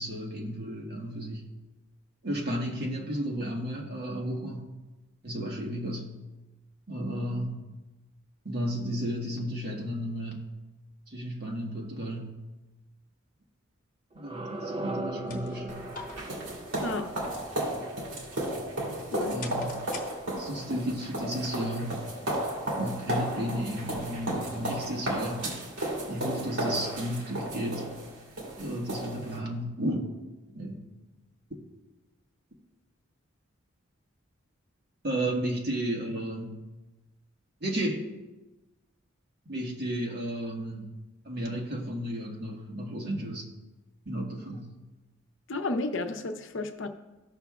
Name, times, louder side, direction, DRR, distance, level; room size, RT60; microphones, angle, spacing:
voice 1, 0.0-1.5 2.2-4.7 5.2-6.1 6.9-7.6 8.4-10.5 11.1-12.4 14.1-15.8 19.3-19.8 20.4-22.0 22.8-25.5 26.1-27.9 28.6-30.1 30.5-30.9 35.0-36.6 37.6-38.0 39.5-40.9 41.2-43.5 44.0-44.7, equal, 50° right, -1 dB, 1.4 m, -33 dB
sound 1, 14.1-19.0, right 1 dB, 25° right, 0.5 m, -40 dB
sound 2, 14.9-20.7, left 4 dB, 40° left, 1.0 m, -48 dB
sound 3, 15.7-29.4, right 1 dB, 75° right, 2.3 m, -34 dB
voice 2, 16.8-17.1 19.1-19.4 45.5-46.9, left 2 dB, 60° left, 6 dB, 0.7 m, -32 dB
15.0 x 6.0 x 2.4 m, 1.1 s
head